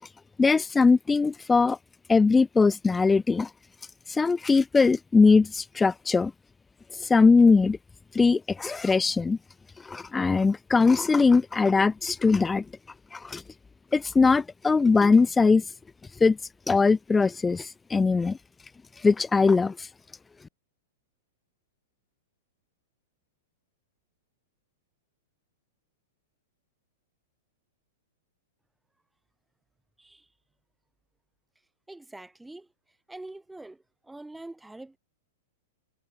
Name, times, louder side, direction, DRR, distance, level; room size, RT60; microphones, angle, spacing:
voice 1, 0.4-1.8 2.1-3.5 4.1-6.3 7.0-7.8 8.1-9.4 9.9-12.6 13.1-13.4 13.9-15.6 16.2-16.4 16.7-18.4 19.0-19.8, left 4 dB, 15° left, 0.5 m, -21 dB
voice 2, 31.9-32.7 33.1-35.0, right 2 dB, 5° right, 6.8 m, -44 dB
hypercardioid pair, 105°, 0 cm